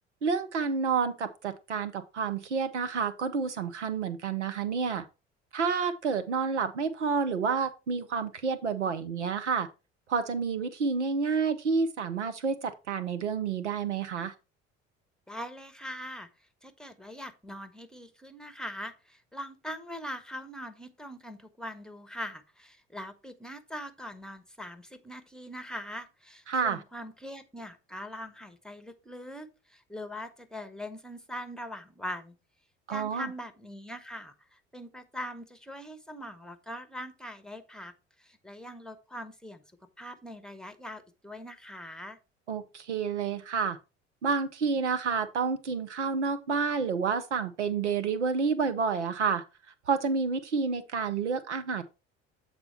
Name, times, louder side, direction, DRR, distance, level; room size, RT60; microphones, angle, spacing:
voice 1, 0.2-5.0 5.5-9.7 10.1-14.3 26.5-26.8 32.9-33.3 42.5-43.8 44.2-49.4 49.9-51.8, right 5 dB, 90° right, 0.7 m, -29 dB
voice 2, 15.3-16.3 16.6-32.4 32.9-37.9 38.2-39.6 40.0-42.2, equal, ahead, 1.1 m, -42 dB
7.9 x 4.2 x 4.3 m
figure-of-eight pair, 60°, 34 cm